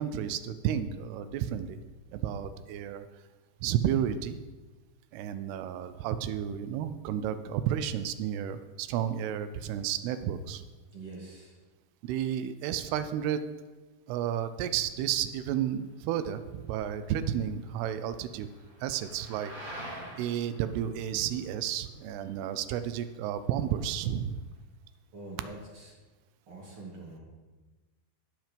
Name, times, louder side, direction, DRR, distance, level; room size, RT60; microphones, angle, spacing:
voice 1, 0.0-1.8 2.1-3.1 3.6-4.4 5.1-10.6 12.0-13.4 14.1-18.5 18.8-19.7 20.2-24.4, right 10 dB, 80° right, 11 dB, 2.6 m, -32 dB
voice 2, 10.9-11.5 25.1-25.9 26.5-27.2, right 2 dB, 40° right, -3 dB, 2.4 m, -44 dB
sound 1, 14.5-24.4, right 1 dB, 25° right, 3.8 m, -49 dB
17.0 x 6.0 x 5.2 m, 1.3 s
omnidirectional pair, 4.7 m